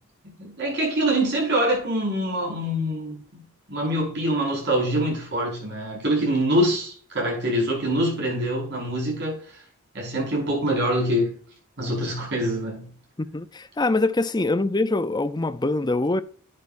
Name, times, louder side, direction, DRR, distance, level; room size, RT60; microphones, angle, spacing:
voice 1, 0.2-9.6 9.9-11.3 11.8-12.9, right 1 dB, 50° right, 5.1 m, -25 dB
voice 2, 13.2-16.2, left 2 dB, 20° left, 0.5 m, -24 dB
10.5 x 9.4 x 2.6 m
head